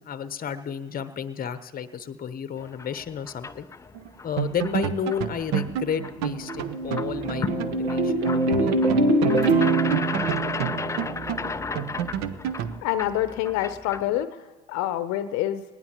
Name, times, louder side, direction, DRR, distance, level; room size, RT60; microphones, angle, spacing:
voice 1, 0.0-3.7 4.2-8.9 10.7-10.8, left 7 dB, 25° left, 10 dB, 0.9 m, -32 dB
sound 1, 2.6-14.2, left 4 dB, 10° left, 0.3 m, -36 dB
sound 2, 3.9-4.1 4.4-7.8 8.1-8.2 8.5-12.8, right 10 dB, 55° right, 0.8 m, -30 dB
sound 3, 6.0-11.6, right 2 dB, 85° right, 1.2 m, -24 dB
voice 2, 12.8-15.6, left 13 dB, 55° left, 12 dB, 0.7 m, -27 dB
19.0 x 18.5 x 3.0 m, 1.3 s
hypercardioid pair, 75°, 32 cm